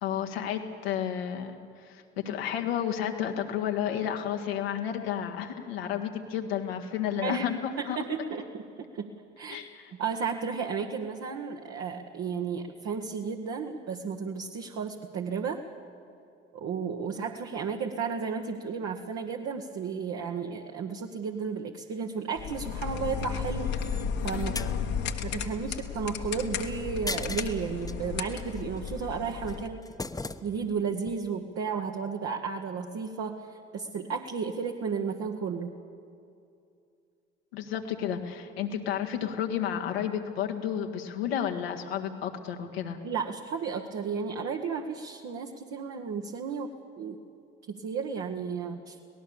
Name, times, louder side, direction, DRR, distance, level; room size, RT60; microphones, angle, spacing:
voice 1, 0.0-8.0 9.5-9.9 24.3-24.8 37.5-43.0, left 9 dB, 85° left, 3 dB, 1.7 m, -32 dB
voice 2, 7.8-8.6 8.9-9.1 9.4-9.6 10.0-15.7 16.5-24.5 25.2-29.8 30.4-35.7 43.0-47.2 47.7-49.0, right 5 dB, 55° right, 2 dB, 1.5 m, -33 dB
sound 1, 22.4-29.7, left 7 dB, 65° left, 1.6 m, -34 dB
sound 2, 23.5-24.7 26.3-26.6 27.1-27.9 28.4-28.9 29.3-30.8 31.1-31.2, left 2 dB, 10° left, 1.0 m, -39 dB
25.0 x 18.5 x 7.1 m, 2.6 s
hypercardioid pair, 55°, 30 cm